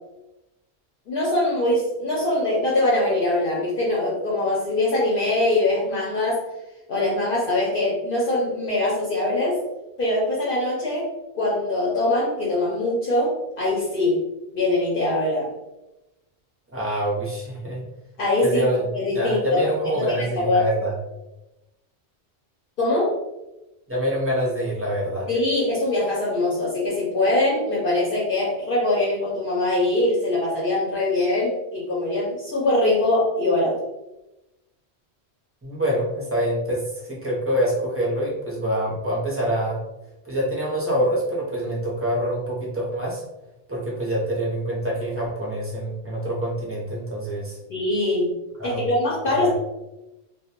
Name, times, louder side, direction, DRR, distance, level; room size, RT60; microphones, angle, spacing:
voice 1, 1.1-6.4 6.9-9.6 10.0-11.1 11.3-14.2 14.5-15.5 18.2-18.6 18.9-19.7 19.9-20.0 20.4-20.7 22.8-23.1 25.3-33.8 47.7-48.3 48.6-49.5, left 2 dB, 60° left, -6 dB, 0.7 m, -22 dB
voice 2, 16.7-17.8 18.4-18.9 19.1-20.9 23.9-25.3 35.6-39.8 40.2-43.2 43.7-47.6 48.6-48.8 49.3-49.5, equal, 20° right, -5 dB, 0.5 m, -25 dB
2.2 x 2.1 x 2.8 m, 0.97 s
omnidirectional pair, 1.1 m